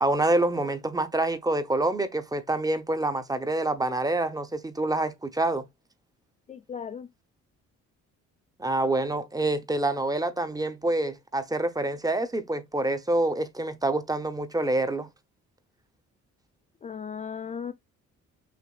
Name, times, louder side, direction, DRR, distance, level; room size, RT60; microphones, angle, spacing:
voice 1, 0.0-5.6 8.6-15.1, right 2 dB, 10° right, 0.8 m, -27 dB
voice 2, 6.5-7.1 16.8-17.7, left 7 dB, 25° left, 0.3 m, -36 dB
6.1 x 2.9 x 2.3 m
cardioid pair, 90°, 30 cm